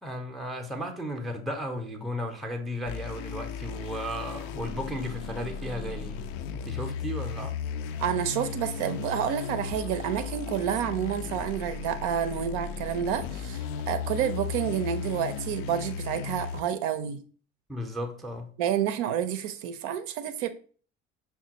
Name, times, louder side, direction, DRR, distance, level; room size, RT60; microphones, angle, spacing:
voice 1, 0.0-6.2 6.5-7.6 17.7-18.5, equal, ahead, 0.6 m, -35 dB
sound 1, 2.9-16.6, left 6 dB, 55° left, 0.4 m, -35 dB
voice 2, 8.0-17.2 18.6-20.5, right 9 dB, 60° right, 0.5 m, -29 dB
5.5 x 2.3 x 2.8 m
figure-of-eight pair, 70°, 40 cm